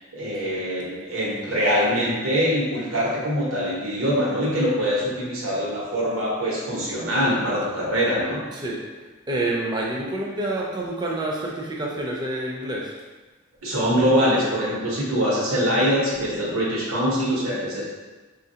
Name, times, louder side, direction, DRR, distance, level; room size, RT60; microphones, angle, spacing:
voice 1, 0.1-8.4 13.6-17.9, equal, 85° right, -6 dB, 1.0 m, -23 dB
voice 2, 8.5-8.8 9.3-12.9, right 2 dB, 20° right, -3 dB, 0.4 m, -28 dB
3.4 x 2.4 x 2.7 m, 1.3 s
head